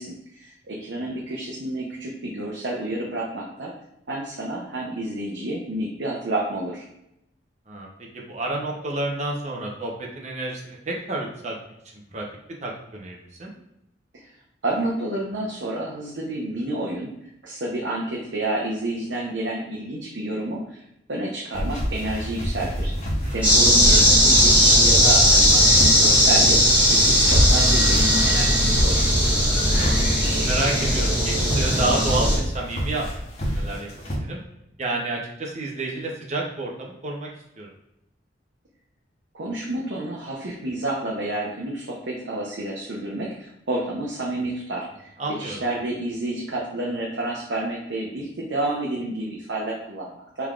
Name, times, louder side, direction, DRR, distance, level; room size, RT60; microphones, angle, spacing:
voice 1, 0.0-3.7 4.1-6.8 14.1-14.3 14.6-17.1 17.4-20.8 21.1-22.9 23.3-26.6 26.9-29.1 39.3-50.5, right 1 dB, 80° right, -3 dB, 0.7 m, -30 dB
voice 2, 7.7-11.6 12.1-12.2 12.6-13.5 23.2-23.5 23.8-24.1 30.0-33.9 34.2-34.4 34.8-37.3 37.6-37.7 45.2-45.6, right 2 dB, 40° right, -1 dB, 0.8 m, -30 dB
sound 1, 21.5-34.2, equal, 40° left, 0.9 m, -27 dB
sound 2, 23.4-32.4, equal, 10° right, 1.5 m, -18 dB
5.3 x 3.5 x 2.4 m, 0.81 s
head